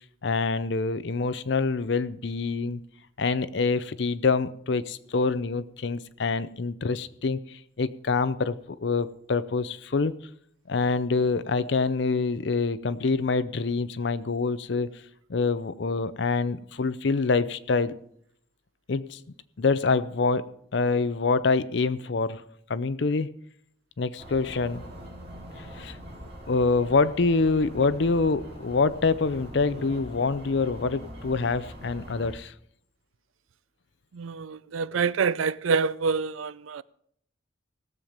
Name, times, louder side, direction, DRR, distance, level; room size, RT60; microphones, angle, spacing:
voice 1, 0.2-2.8 3.2-10.1 10.7-14.9 15.3-17.9 18.9-19.2 19.6-22.4 22.7-23.3 24.0-24.8 25.8-26.0 26.5-32.5, left 4 dB, 60° left, 0.5 m, -26 dB
sound 1, 24.2-32.3, equal, 30° right, 4.1 m, -43 dB
voice 2, 34.1-36.8, right 5 dB, 85° right, 0.5 m, -26 dB
17.0 x 7.3 x 5.2 m
head